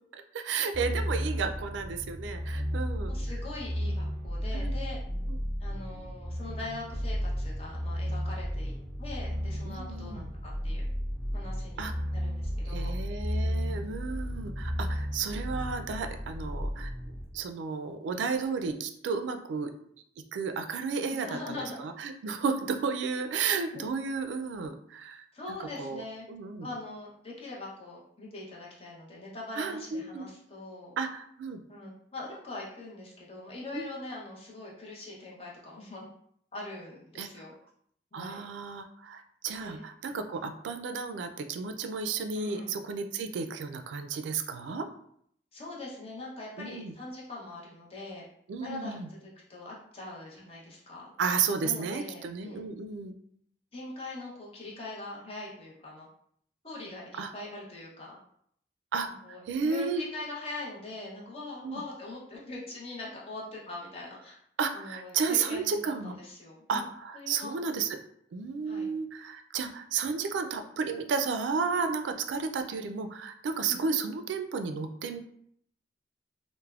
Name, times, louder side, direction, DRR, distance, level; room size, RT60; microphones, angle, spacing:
voice 1, 0.3-3.1 4.5-4.7 5.3-5.4 9.7-10.3 11.8-11.9 12.7-16.9 17.3-19.7 20.3-25.2 25.8-26.7 29.6-30.3 31.0-31.6 33.7-33.9 37.2-37.3 38.1-44.9 46.6-46.9 48.5-49.1 51.2-53.1 57.2-57.3 58.9-59.1 59.5-60.0 61.6-61.8 64.6-66.1 66.7-68.0 68.3-75.2, right 5 dB, 85° right, 7 dB, 0.3 m, -33 dB
sound 1, 0.7-17.2, equal, 15° left, 1.0 m, -33 dB
voice 2, 3.1-5.0 5.6-8.7 9.0-10.8 11.3-11.9 12.1-13.0 13.6-13.9 21.1-21.7 23.7-23.8 25.3-26.3 26.6-31.0 31.7-36.1 36.5-37.5 38.1-38.5 39.6-39.8 40.3-40.4 42.4-42.7 45.5-48.2 48.6-51.1 51.6-52.6 53.7-56.1 56.6-58.2 59.2-64.4 64.7-66.8 67.1-67.5 68.6-68.9 73.7-73.8, left 2 dB, 35° left, -4 dB, 0.7 m, -42 dB
3.3 x 2.0 x 2.3 m, 0.67 s
head